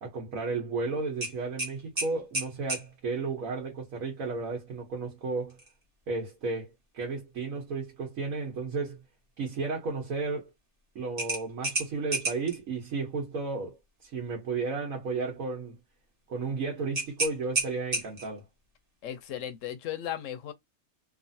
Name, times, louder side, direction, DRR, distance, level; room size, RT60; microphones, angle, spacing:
voice 1, 0.0-5.6 6.1-9.0 9.4-10.5 10.9-13.8 14.0-15.8 16.3-18.4, right 4 dB, 75° right, 1.3 m, -33 dB
sound 1, 1.2-2.9 5.5-5.7 6.2-6.3 11.2-12.6 16.9-18.4, right 2 dB, 30° right, 1.1 m, -32 dB
voice 2, 19.0-20.5, left 11 dB, 70° left, 0.9 m, -36 dB
3.0 x 2.5 x 2.6 m
omnidirectional pair, 1.4 m